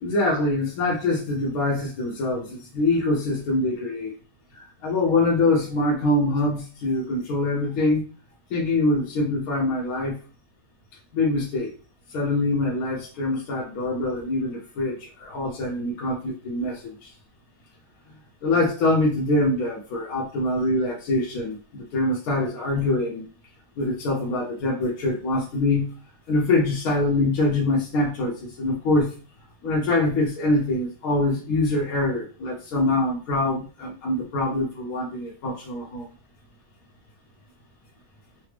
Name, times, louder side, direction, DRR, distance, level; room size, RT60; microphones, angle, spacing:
voice 1, 0.0-4.1 4.5-8.0 8.5-10.2 11.1-11.7 12.1-17.1 18.4-23.3 23.8-25.9 26.3-29.1 29.6-36.1, left 2 dB, 70° left, -3 dB, 1.1 m, -24 dB
3.3 x 2.0 x 3.2 m, 0.37 s
omnidirectional pair, 1.7 m